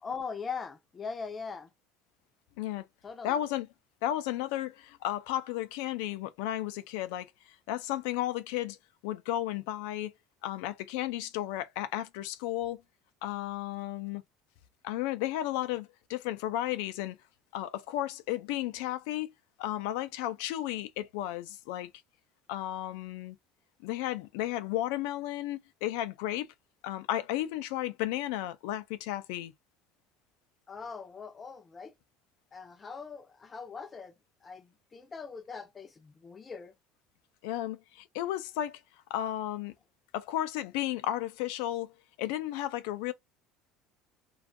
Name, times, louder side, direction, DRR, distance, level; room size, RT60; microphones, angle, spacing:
voice 1, 0.0-1.7 3.0-3.4 30.7-31.9 32.5-34.2 34.4-36.7, left 5 dB, 20° left, 0.5 m, -41 dB
voice 2, 3.2-3.7 4.0-7.3 7.7-8.8 9.0-10.1 10.4-12.8 13.2-14.2 14.8-17.2 17.5-19.3 19.6-21.9 22.5-23.4 23.8-26.5 26.8-29.5 37.4-38.8 39.1-39.7 40.1-41.9 42.2-43.1, left 13 dB, 85° left, 0.3 m, -33 dB
2.5 x 2.3 x 2.5 m
cardioid pair, 145°, 0 cm